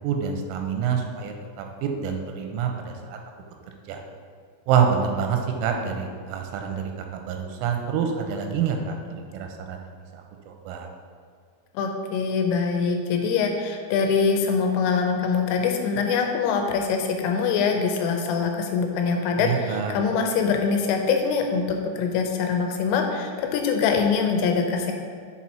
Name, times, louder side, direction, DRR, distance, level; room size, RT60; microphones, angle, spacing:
voice 1, 0.0-3.2 3.9-4.0 4.7-9.0 9.3-9.9 10.1-10.9 19.4-19.9, right 7 dB, 90° right, 3 dB, 3.4 m, -27 dB
voice 2, 11.7-24.9, left 5 dB, 85° left, 3 dB, 3.1 m, -24 dB
7.5 x 4.3 x 4.2 m, 2.1 s
omnidirectional pair, 5.9 m